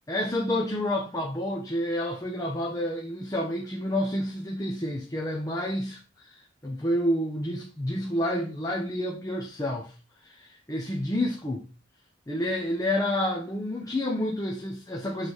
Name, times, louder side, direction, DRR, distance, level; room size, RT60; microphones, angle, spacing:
voice 1, 0.1-6.3 6.6-9.9 10.2-11.6 12.3-15.3, left 1 dB, 15° left, 0.9 m, -29 dB
6.3 x 4.1 x 4.9 m
head